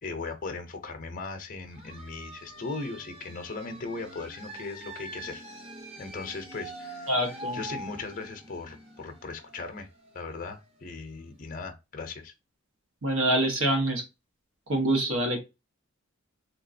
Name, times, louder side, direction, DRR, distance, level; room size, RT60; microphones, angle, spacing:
voice 1, 0.0-5.4 6.0-7.2 7.5-9.9 10.1-12.3, left 3 dB, 40° left, 0.7 m, -38 dB
sound 1, 1.7-11.2, right 1 dB, 30° right, 0.8 m, -44 dB
voice 2, 7.1-7.6 13.0-14.0 14.7-15.4, right 1 dB, 75° right, 1.4 m, -25 dB
3.6 x 2.9 x 2.6 m
head